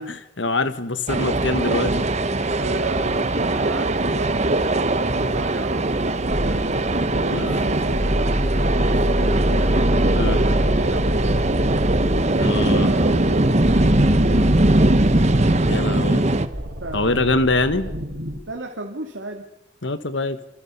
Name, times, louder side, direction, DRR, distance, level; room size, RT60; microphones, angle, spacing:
voice 1, 0.4-2.1 7.3-7.6 10.1-10.4 12.4-12.9 15.7-16.2 16.9-17.9 19.8-20.4, left 2 dB, 70° left, 12 dB, 1.5 m, -23 dB
sound 1, 1.1-16.5, right 2 dB, 35° right, 1.1 m, -21 dB
voice 2, 2.6-6.8 7.2-9.7 10.2-11.8 12.7-15.1 16.8-17.4 18.5-19.4, right 2 dB, 85° right, 1 dB, 2.4 m, -34 dB
sound 2, 6.2-18.4, equal, 55° right, 7.1 m, -25 dB
28.0 x 25.5 x 5.6 m, 0.87 s
head